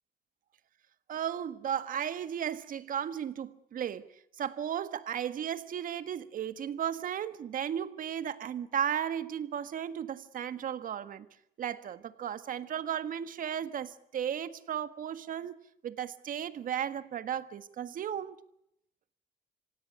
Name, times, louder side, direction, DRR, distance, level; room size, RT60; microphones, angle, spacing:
voice 1, 1.1-4.1 4.4-11.2 11.6-15.6 15.8-18.4, right 9 dB, 55° right, 12 dB, 1.6 m, -35 dB
26.0 x 17.0 x 8.2 m, 0.78 s
cardioid pair, 120°, 16 cm